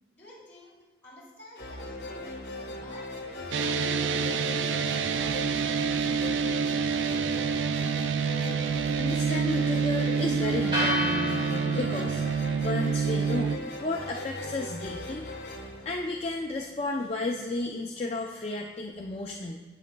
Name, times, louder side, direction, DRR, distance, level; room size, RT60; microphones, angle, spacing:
voice 1, 0.1-0.8 1.0-4.3 4.6-5.9, equal, 10° left, -9 dB, 2.5 m, -50 dB
sound 1, 1.6-16.8, left 2 dB, 55° left, 0.9 m, -39 dB
sound 2, 3.5-13.6, right 6 dB, 85° right, 0.4 m, -27 dB
voice 2, 8.3-12.3 12.6-13.5 13.8-15.3 15.8-19.6, left 2 dB, 35° left, 0 dB, 0.4 m, -33 dB
sound 3, 10.7-18.9, equal, 30° right, 2.4 m, -37 dB
10.5 x 8.3 x 2.2 m, 1.3 s
head